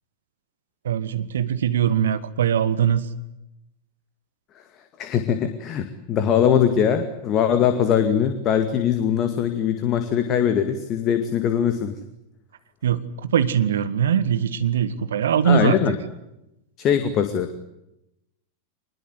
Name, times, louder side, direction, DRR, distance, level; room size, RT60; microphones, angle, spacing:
voice 1, 0.8-3.1 12.8-15.8, right 8 dB, 65° right, 12 dB, 1.8 m, -21 dB
voice 2, 5.0-11.9 15.5-16.0 16.8-17.5, left 8 dB, 35° left, 8 dB, 2.1 m, -21 dB
25.0 x 21.0 x 9.6 m, 0.87 s
figure-of-eight pair, 90°, 0 cm